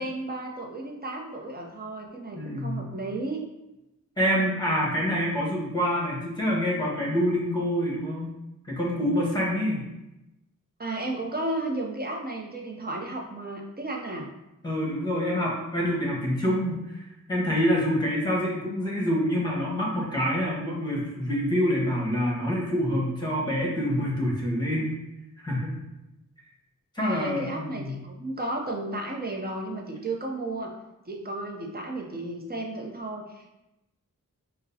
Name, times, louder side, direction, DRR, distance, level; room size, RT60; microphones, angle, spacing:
voice 1, 0.0-3.4 10.8-14.3 27.0-30.7 31.1-33.5, right 2 dB, 30° right, 0 dB, 0.6 m, -33 dB
voice 2, 2.3-2.8 4.2-8.3 8.6-9.9 14.6-24.9 25.4-25.8 26.9-28.0, equal, 15° left, -4 dB, 1.2 m, -26 dB
5.0 x 2.1 x 2.7 m, 0.96 s
wide cardioid pair, 45°, 32 cm